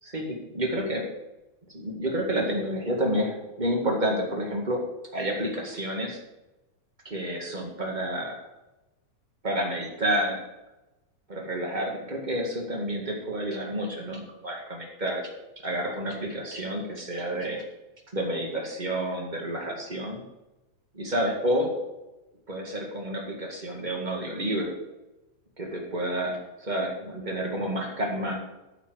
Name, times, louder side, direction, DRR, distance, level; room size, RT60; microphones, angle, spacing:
voice 1, 0.0-1.0 1.7-4.8 5.1-6.2 7.0-8.5 9.4-10.4 11.3-15.3 15.6-17.6 18.1-20.2 20.9-21.7 22.5-24.7 25.6-28.3, right 1 dB, 20° right, 0 dB, 1.5 m, -29 dB
9.4 x 6.7 x 6.4 m, 1.0 s
omnidirectional pair, 3.6 m